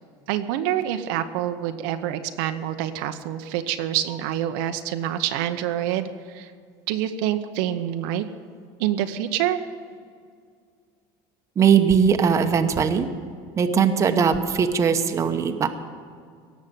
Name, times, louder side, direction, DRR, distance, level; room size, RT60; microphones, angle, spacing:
voice 1, 0.3-6.5 6.9-8.2 8.8-9.6, right 11 dB, 85° right, 8 dB, 0.9 m, -26 dB
voice 2, 11.6-13.1 13.6-15.7, right 7 dB, 25° right, 7 dB, 0.9 m, -20 dB
17.5 x 7.4 x 9.2 m, 2.1 s
cardioid pair, 135°, 11 cm